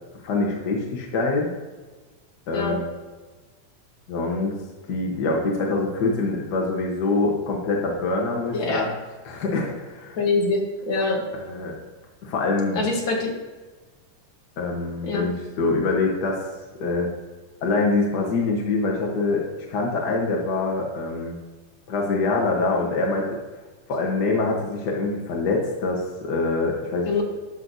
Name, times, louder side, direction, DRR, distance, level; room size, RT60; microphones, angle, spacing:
voice 1, 0.2-1.5 2.5-2.9 4.1-4.5 4.9-8.9 9.2-10.2 11.4-11.8 12.2-12.8 14.6-16.5 16.8-17.1 17.6-19.4 19.7-21.4 21.9-23.4 23.9-27.1, left 3 dB, 70° left, -1 dB, 0.9 m, -24 dB
voice 2, 2.5-2.8 8.5-8.9 10.2-11.2 12.7-13.3 15.0-15.3 27.1-27.2, left 3 dB, 50° left, 0 dB, 1.6 m, -24 dB
11.5 x 6.2 x 2.7 m, 1.3 s
omnidirectional pair, 3.5 m